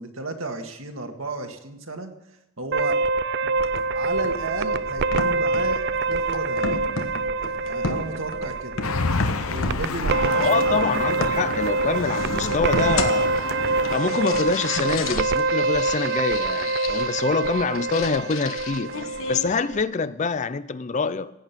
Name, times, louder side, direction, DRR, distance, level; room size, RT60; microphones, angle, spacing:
voice 1, 0.0-2.1 2.6-3.0 3.4-3.5 3.9-6.8 7.6-8.7 9.5-11.1, right 2 dB, 70° right, 1.9 m, -33 dB
sound 1, 2.7-19.8, right 3 dB, 50° right, 0.4 m, -25 dB
sound 2, 3.6-19.6, left 3 dB, 70° left, 1.2 m, -33 dB
sound 3, 8.8-14.0, left 4 dB, 90° left, 0.9 m, -30 dB
voice 2, 10.3-13.3 13.9-19.0 19.3-21.3, left 4 dB, 35° left, 0.4 m, -25 dB
16.5 x 8.9 x 6.0 m
head